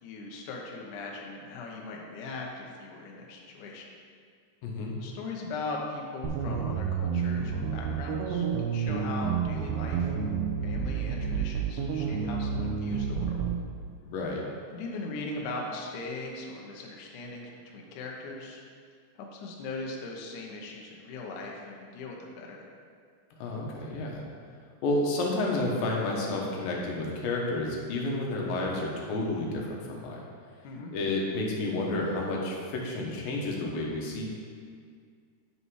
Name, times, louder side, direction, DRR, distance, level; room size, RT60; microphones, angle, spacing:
voice 1, 0.0-3.9 5.0-10.1 10.6-13.4 14.7-18.6 19.2-22.6 30.6-30.9, left 3 dB, 85° left, -1 dB, 1.7 m, -39 dB
voice 2, 4.6-5.0 14.0-14.4 23.4-24.2 24.8-30.3 30.9-34.3, left 2 dB, 70° left, -2 dB, 2.5 m, -30 dB
sound 1, 6.2-13.6, right 6 dB, 85° right, 2.7 m, -30 dB
9.0 x 5.5 x 4.8 m, 2.1 s
omnidirectional pair, 5.0 m